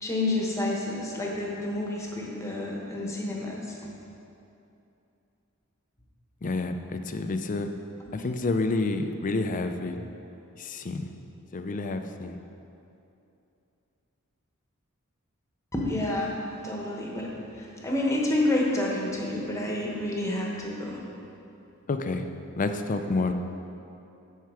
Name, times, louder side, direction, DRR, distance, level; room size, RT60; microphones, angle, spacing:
voice 1, 0.0-3.9 8.0-8.1 15.7-16.3 16.6-21.0, left 1 dB, 15° left, -2 dB, 1.1 m, -29 dB
voice 2, 6.4-7.7 8.1-10.1 10.6-11.1 11.5-12.4 21.9-22.3 22.6-23.3, left 3 dB, 40° left, 7 dB, 0.4 m, -29 dB
10.5 x 4.6 x 4.8 m, 2.8 s
head